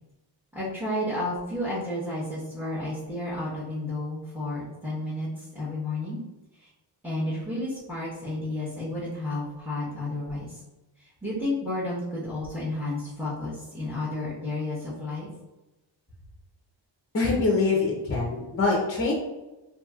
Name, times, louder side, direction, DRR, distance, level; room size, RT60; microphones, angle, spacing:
voice 1, 0.5-6.2 6.6-6.7 7.0-10.6 11.2-15.3, left 1 dB, 5° right, -10 dB, 0.9 m, -31 dB
voice 2, 17.1-19.1, left 3 dB, 30° left, -1 dB, 0.6 m, -24 dB
2.9 x 2.8 x 2.3 m, 1.0 s
cardioid pair, 85°, 47 cm